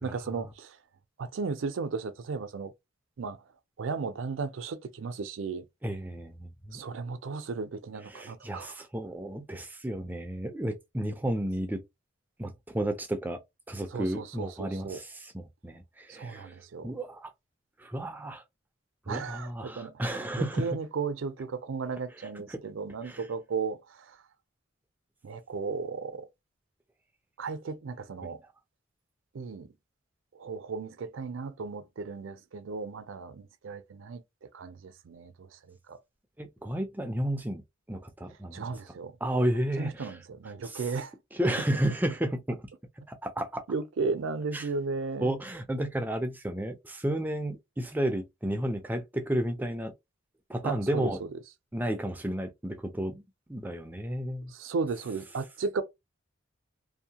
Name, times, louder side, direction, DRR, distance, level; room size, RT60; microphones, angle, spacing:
voice 1, 0.0-0.8 1.2-2.7 3.2-3.4 3.8-5.6 6.7-8.8 13.9-15.0 16.1-16.9 19.1-24.2 25.2-26.3 27.4-28.4 29.3-29.7 30.3-34.2 34.5-36.0 38.5-39.2 39.8-41.1 43.7-45.3 50.6-51.3 54.5-55.8, right 4 dB, 70° right, 0.4 m, -35 dB
voice 2, 5.8-6.8 8.1-11.8 12.4-13.4 13.7-16.6 16.8-17.3 17.8-18.4 19.1-20.7 22.5-22.6 23.0-23.2 36.4-37.6 37.9-38.6 39.2-40.2 40.6-40.8 41.3-42.6 43.1-43.6 44.5-44.7 45.2-49.9 50.5-51.2 51.7-53.2 53.5-54.5, right 1 dB, 10° right, 0.3 m, -32 dB
2.6 x 2.1 x 2.8 m
head